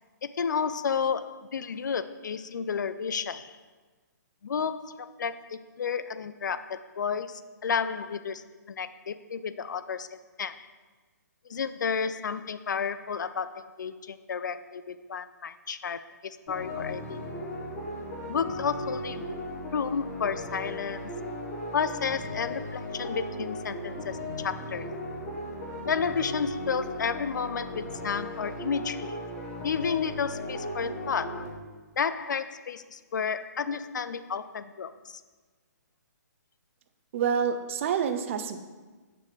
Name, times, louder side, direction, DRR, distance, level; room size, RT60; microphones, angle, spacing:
voice 1, 0.2-3.6 4.4-10.1 10.4-10.7 11.5-17.2 18.3-19.3 19.7-21.1 21.7-24.9 25.9-29.2 29.6-31.5 32.0-35.2, left 6 dB, 85° left, 13 dB, 0.4 m, -32 dB
sound 1, 16.5-31.5, left 1 dB, 45° left, 1.2 m, -37 dB
voice 2, 37.1-38.6, right 7 dB, 45° right, 8 dB, 0.5 m, -27 dB
6.7 x 5.3 x 3.2 m, 1.3 s
hypercardioid pair, 145°, 10 cm